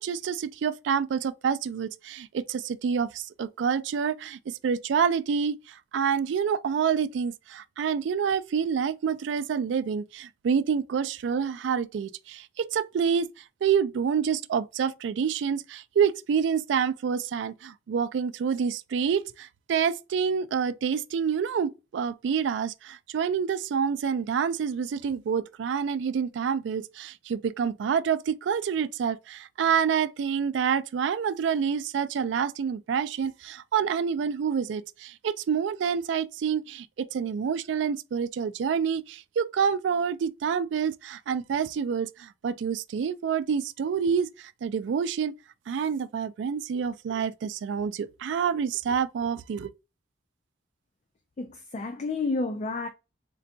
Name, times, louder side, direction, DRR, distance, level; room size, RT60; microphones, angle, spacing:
voice 1, 0.0-45.3 45.7-49.7, right 7 dB, 70° right, 0.3 m, -27 dB
voice 2, 51.4-52.9, left 3 dB, 40° left, 0.4 m, -30 dB
3.8 x 2.2 x 2.6 m
head